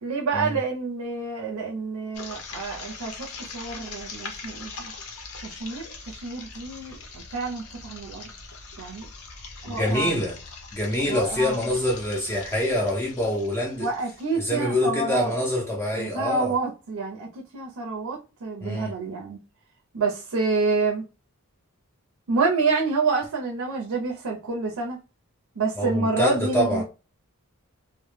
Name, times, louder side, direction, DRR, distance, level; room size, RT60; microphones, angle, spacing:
voice 1, 0.0-3.3 3.5-4.9 5.4-8.3 8.8-9.1 9.6-10.2 11.0-11.6 13.8-15.3 15.9-19.4 19.9-21.0 22.3-25.0 25.6-26.8, right 4 dB, 75° right, 0.5 m, -28 dB
sound 1, 2.1-15.0, left 4 dB, 70° left, 0.6 m, -42 dB
voice 2, 9.7-10.4 10.7-13.9 14.4-16.5 18.6-18.9 25.8-26.8, left 1 dB, 10° left, 0.4 m, -25 dB
2.1 x 2.0 x 3.1 m
head